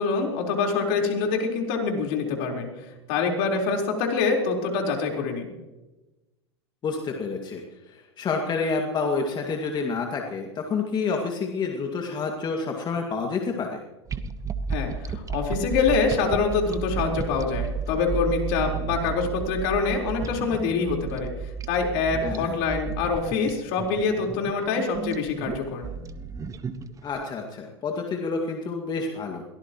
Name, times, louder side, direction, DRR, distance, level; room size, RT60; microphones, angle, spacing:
voice 1, 0.0-2.7 3.1-5.5 14.7-25.9, left 4 dB, 60° left, 1 dB, 4.3 m, -25 dB
voice 2, 6.8-7.6 7.9-13.8 22.2-22.5 27.0-29.4, left 4 dB, 30° left, 2 dB, 2.2 m, -28 dB
sound 1, 14.1-27.2, right 6 dB, 20° right, 1.2 m, -33 dB
23.0 x 18.0 x 3.1 m, 1.1 s
hypercardioid pair, 90°, 14 cm